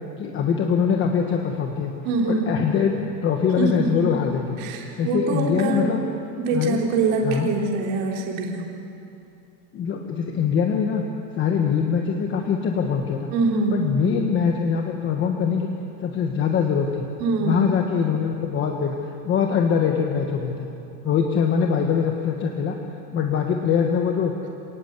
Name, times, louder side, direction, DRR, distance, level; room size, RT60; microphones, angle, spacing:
voice 1, 0.2-1.9 2.3-4.6 5.0-6.0 6.5-6.8 7.2-7.5 9.7-11.0 11.3-13.3 13.7-15.7 16.0-17.1 17.4-20.7 21.0-22.8 23.1-24.3, left 7 dB, 25° left, 2 dB, 1.3 m, -23 dB
voice 2, 2.0-2.6 3.6-4.0 4.6-5.9 6.4-8.7 13.3-13.8 17.2-17.7, right 3 dB, 65° right, -1 dB, 3.5 m, -24 dB
27.0 x 19.0 x 8.2 m, 2.7 s
cardioid pair, 175°, 44 cm